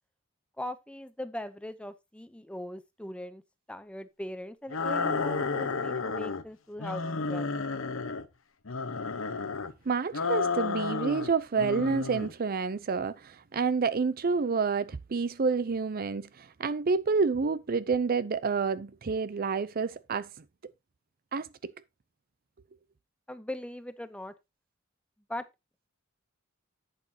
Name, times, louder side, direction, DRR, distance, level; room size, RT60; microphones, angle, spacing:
voice 1, 0.6-3.4 3.7-7.6 23.3-24.3 25.3-25.5, left 1 dB, 5° left, 0.7 m, -40 dB
sound 1, 4.7-6.4 6.8-8.3 8.7-9.7 10.1-11.3 11.6-12.3, left 4 dB, 75° left, 1.0 m, -31 dB
voice 2, 9.9-20.3 21.3-21.7, right 5 dB, 45° right, 0.5 m, -29 dB
11.0 x 8.2 x 2.8 m
head